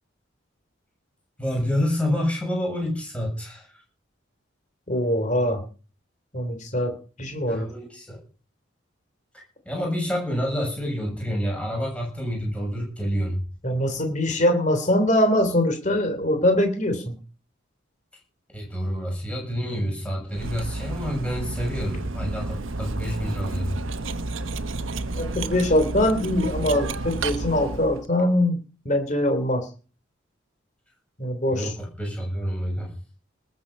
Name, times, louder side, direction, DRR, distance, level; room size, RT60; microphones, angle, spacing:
voice 1, 1.4-3.7 7.5-8.2 9.3-13.4 18.5-23.8 31.5-32.9, equal, 5° left, 0 dB, 7.0 m, -28 dB
voice 2, 4.9-5.6 6.3-7.7 13.6-17.1 19.6-19.8 25.2-28.6 28.8-29.7 31.2-31.7, left 1 dB, 35° left, 6 dB, 3.1 m, -23 dB
Cutlery silverware, 20.3-28.1, right 2 dB, 80° right, 1.2 m, -31 dB
20.0 x 8.3 x 5.4 m, 0.37 s
head